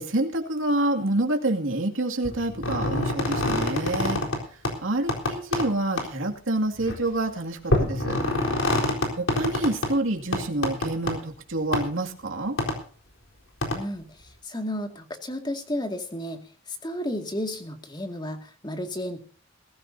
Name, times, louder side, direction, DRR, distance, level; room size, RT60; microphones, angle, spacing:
voice 1, 0.0-4.2 4.8-8.2 9.2-12.6, right 2 dB, 75° right, 2 dB, 2.4 m, -27 dB
sound 1, 2.2-4.4 4.6-4.7 5.1-5.7 6.0-6.1 6.8-6.9 7.7-9.9 10.3-11.1 11.7-11.8 12.6-12.7 13.6-13.8, left 1 dB, 70° left, 4.0 m, -25 dB
voice 2, 13.7-16.4 16.7-19.2, left 1 dB, 20° left, 5 dB, 2.1 m, -32 dB
21.0 x 14.0 x 2.8 m, 0.42 s
head